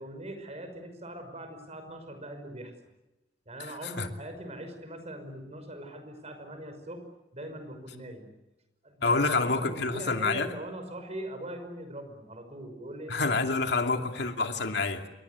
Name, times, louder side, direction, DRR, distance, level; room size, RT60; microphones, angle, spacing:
voice 1, 0.0-2.7 3.5-7.0 7.3-8.3 8.8-13.3, right 1 dB, 35° right, 7 dB, 5.8 m, -41 dB
voice 2, 9.0-10.5 13.1-15.0, left 3 dB, 65° left, 5 dB, 2.6 m, -27 dB
28.0 x 23.5 x 8.3 m, 1.0 s
head